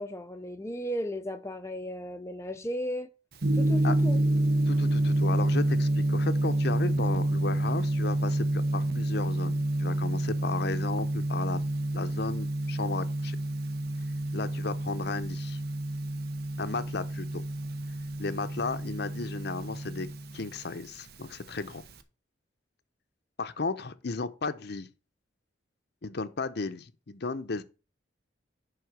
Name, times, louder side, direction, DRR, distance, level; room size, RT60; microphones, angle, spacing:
voice 1, 0.0-3.1 3.5-4.2, equal, 15° left, 0.6 m, -35 dB
Gong, 3.4-22.0, right 1 dB, 55° right, 1.0 m, -28 dB
voice 2, 4.7-13.4 14.3-15.6 16.6-17.4 18.2-20.1 20.3-21.8 23.4-24.9 26.0-27.6, left 4 dB, 60° left, 0.7 m, -34 dB
10.5 x 3.8 x 6.4 m
head